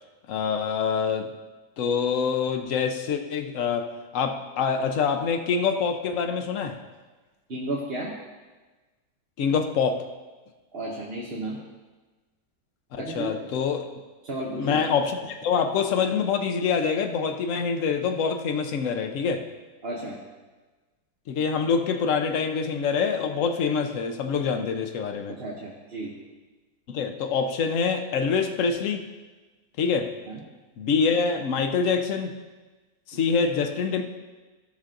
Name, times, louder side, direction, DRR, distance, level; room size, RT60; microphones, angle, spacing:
voice 1, 0.3-1.3 1.8-6.8 9.4-10.1 12.9-13.8 14.6-19.5 21.3-25.3 26.9-29.0 29.8-30.1 30.8-32.3 33.1-34.0, left 6 dB, 60° left, 6 dB, 1.1 m, -25 dB
voice 2, 7.5-8.1 10.7-11.6 13.0-13.3 14.2-14.8 19.8-20.2 25.3-26.1 30.3-30.4, right 2 dB, 40° right, -5 dB, 1.4 m, -33 dB
16.0 x 6.2 x 3.8 m, 1.3 s
omnidirectional pair, 1.6 m